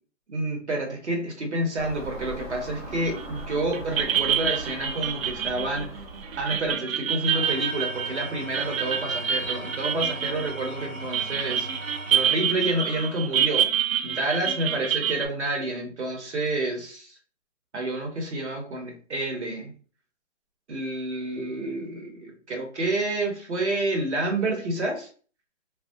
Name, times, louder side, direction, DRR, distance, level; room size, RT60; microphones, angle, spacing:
voice 1, 0.3-5.9 6.4-11.7 12.1-13.7 14.0-17.2 17.7-19.7 20.7-25.1, right 2 dB, 60° right, 2 dB, 1.0 m, -29 dB
Car passing by / Engine, 1.8-6.8, right 1 dB, 15° right, 0.7 m, -39 dB
sound 1, 3.2-3.5 3.7-15.3, right 8 dB, 85° right, 0.5 m, -27 dB
Engine / Tools, 7.2-13.6, right 1 dB, 35° left, 0.4 m, -39 dB
3.3 x 2.2 x 2.7 m, 0.42 s
hypercardioid pair, 175°, 39 cm